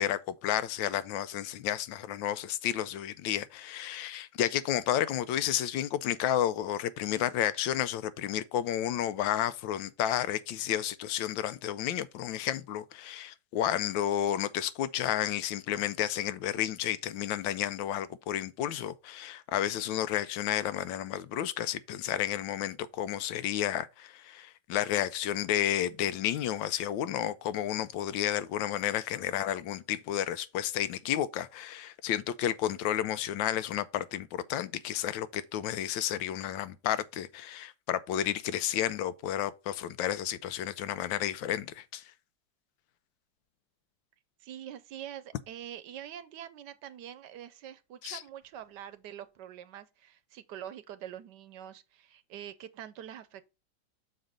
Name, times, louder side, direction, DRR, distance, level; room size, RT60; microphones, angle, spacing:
voice 1, 0.0-42.0 48.0-48.2, left 11 dB, 90° left, 1.3 m, -31 dB
voice 2, 44.4-53.5, right 10 dB, 70° right, 1.2 m, -45 dB
6.4 x 4.4 x 5.1 m
omnidirectional pair, 2.0 m